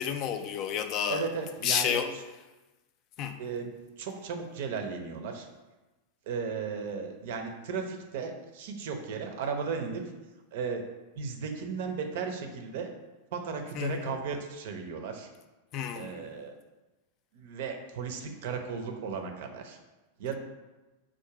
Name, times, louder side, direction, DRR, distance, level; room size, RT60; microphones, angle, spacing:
voice 1, 0.0-1.3 1.6-2.1 3.2-3.4 13.8-14.1 15.7-16.3, left 8 dB, 40° left, 8 dB, 0.3 m, -31 dB
voice 2, 1.1-2.0 3.4-3.7 4.0-5.5 6.3-10.0 10.5-10.8 11.1-12.9 13.3-15.3 16.0-16.5 17.3-19.8 20.2-20.4, right 5 dB, 55° right, 5 dB, 0.5 m, -35 dB
3.7 x 2.6 x 4.6 m, 1.1 s
figure-of-eight pair, 90°, 0 cm